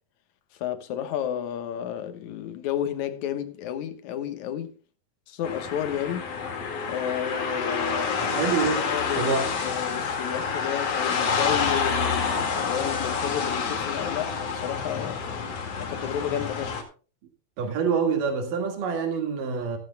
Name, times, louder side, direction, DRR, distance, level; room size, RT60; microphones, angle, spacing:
voice 1, 0.5-4.8 5.3-6.3 6.8-8.4 8.8-9.4 9.6-15.2 15.8-16.8, left 10 dB, 70° left, 2.4 m, -32 dB
sound 1, 5.4-16.8, left 5 dB, 50° left, 2.8 m, -28 dB
voice 2, 8.2-8.9 9.2-9.5 17.6-19.8, right 5 dB, 85° right, 3.5 m, -26 dB
14.0 x 14.0 x 2.2 m
omnidirectional pair, 3.7 m